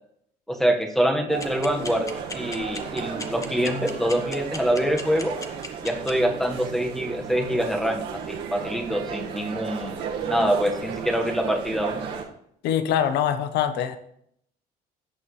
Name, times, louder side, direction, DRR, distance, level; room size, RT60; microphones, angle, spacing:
voice 1, 0.5-5.3 5.8-12.0, equal, ahead, 3 dB, 1.4 m, -25 dB
sound 1, 1.3-12.2, right 6 dB, 85° right, 1.7 m, -34 dB
sound 2, 1.4-6.1, left 3 dB, 20° left, 1.2 m, -34 dB
voice 2, 12.6-14.0, left 9 dB, 85° left, 10 dB, 1.0 m, -23 dB
17.0 x 6.2 x 3.2 m, 0.70 s
cardioid pair, 110°, 17 cm